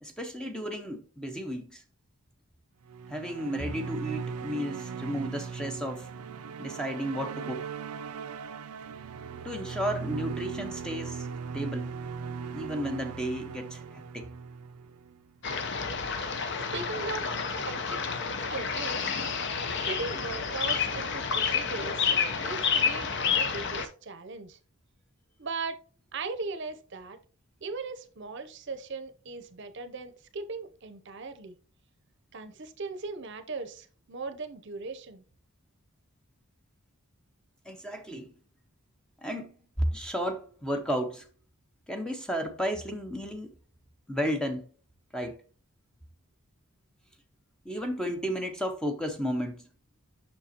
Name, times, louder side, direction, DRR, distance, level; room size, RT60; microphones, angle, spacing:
voice 1, 0.0-1.8 3.1-6.2 6.6-7.7 9.4-11.3 11.5-11.9 12.5-14.3 37.6-38.3 39.2-41.3 41.9-43.5 44.1-44.6 45.1-45.4 47.6-49.7, equal, 5° left, 0.6 m, -33 dB
sound 1, 2.9-15.3, right 6 dB, 90° right, 0.5 m, -38 dB
sound 2, 15.4-23.9, left 5 dB, 50° left, 0.7 m, -29 dB
voice 2, 16.7-17.3 17.6-18.0 18.5-19.1 19.9-22.1 22.4-24.6 25.4-25.8 26.1-27.2 27.6-31.6 32.3-35.2, right 4 dB, 50° right, 0.6 m, -38 dB
7.6 x 5.9 x 2.8 m
head